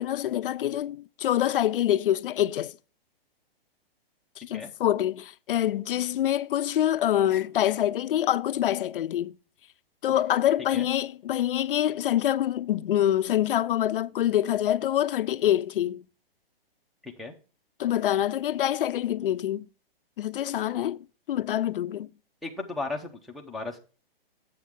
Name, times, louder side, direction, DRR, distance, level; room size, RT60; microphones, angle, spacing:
voice 1, 0.0-2.7 4.4-9.3 10.0-16.0 17.8-19.7 20.2-22.1, left 12 dB, 65° left, 0.5 m, -26 dB
voice 2, 17.0-17.3 22.4-23.8, left 3 dB, ahead, 0.6 m, -35 dB
7.6 x 7.5 x 3.5 m
hypercardioid pair, 150°, 30 cm